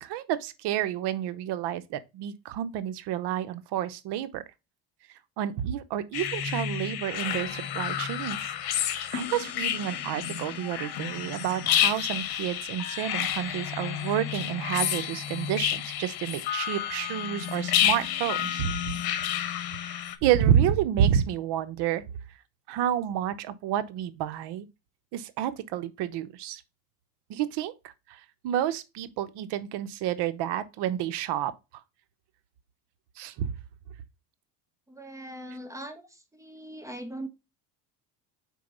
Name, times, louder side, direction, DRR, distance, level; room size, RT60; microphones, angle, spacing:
voice 1, 0.0-4.4 5.4-8.4 8.8-18.9 19.8-22.0 22.7-24.7 25.1-26.6 27.3-31.5 33.2-33.5, right 10 dB, 75° right, 0.9 m, -29 dB
sound 1, 6.1-20.2, left 10 dB, 60° left, 1.2 m, -30 dB
voice 2, 34.9-36.0 36.3-37.3, right 1 dB, 5° right, 1.3 m, -40 dB
4.6 x 4.5 x 5.2 m
cardioid pair, 105°, 41 cm